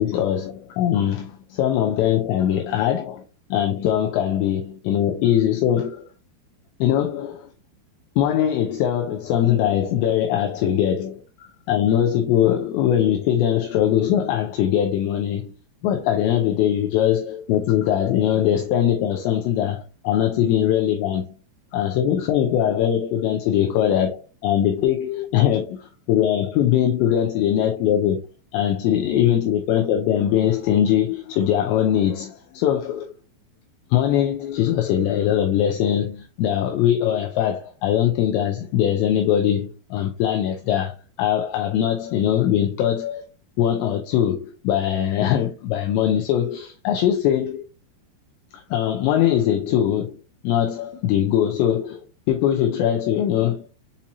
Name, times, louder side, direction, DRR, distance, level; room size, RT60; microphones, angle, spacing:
voice 1, 0.0-3.2 3.5-6.1 6.8-7.5 8.2-15.5 15.8-19.8 20.0-21.3 21.7-28.2 28.5-33.1 33.9-43.2 43.6-47.6 48.5-50.2 50.4-53.6, left 10 dB, 80° left, 2.6 m, -21 dB
7.2 x 2.8 x 2.6 m
omnidirectional pair, 5.4 m